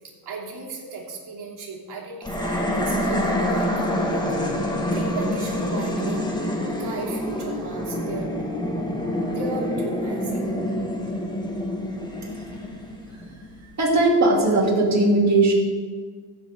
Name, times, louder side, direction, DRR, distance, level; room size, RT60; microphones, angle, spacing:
voice 1, 0.2-4.6 4.9-6.2 6.8-8.4 9.3-10.4, right 3 dB, 55° right, -3 dB, 2.9 m, -35 dB
sound 1, 2.2-13.6, left 1 dB, 10° left, 1.7 m, -27 dB
voice 2, 13.8-15.5, right 2 dB, 35° right, -2 dB, 2.9 m, -18 dB
15.5 x 7.3 x 3.7 m, 1.5 s
cardioid pair, 110°, 46 cm